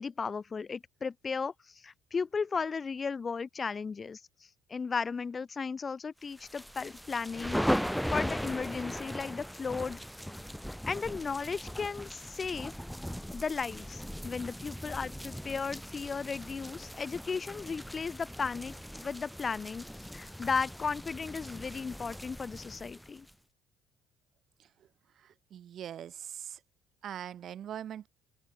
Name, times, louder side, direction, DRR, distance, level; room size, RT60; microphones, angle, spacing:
voice 1, 0.0-4.2 4.7-7.6 8.1-10.0 10.9-12.7 13.3-18.7 19.0-19.9 20.1-23.3, left 5 dB, 30° left, 1.5 m, -35 dB
sound 1, 6.4-23.3, equal, ahead, 0.9 m, -38 dB
voice 2, 25.2-26.6 27.0-28.1, right 10 dB, 55° right, 2.0 m, -42 dB
open air
supercardioid pair, 80°, 0 cm